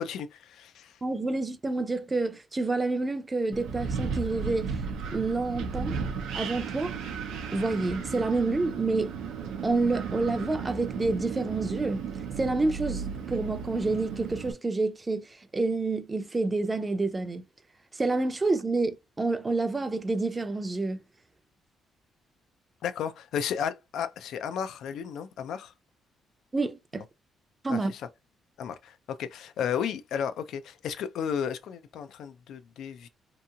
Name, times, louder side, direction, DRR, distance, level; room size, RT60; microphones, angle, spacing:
voice 1, 0.0-1.0 22.8-25.7 27.7-28.1 28.6-33.1, left 8 dB, 80° left, 0.4 m, -33 dB
voice 2, 1.0-4.7 5.1-6.0 6.3-6.9 7.5-9.1 9.6-12.1 12.4-17.4 17.9-21.0 26.5-27.0 27.6-27.9, right 3 dB, 25° right, 0.5 m, -28 dB
Wind, 3.5-14.5, right 6 dB, 90° right, 0.6 m, -35 dB
2.9 x 2.7 x 2.3 m
cardioid pair, 90°, 0 cm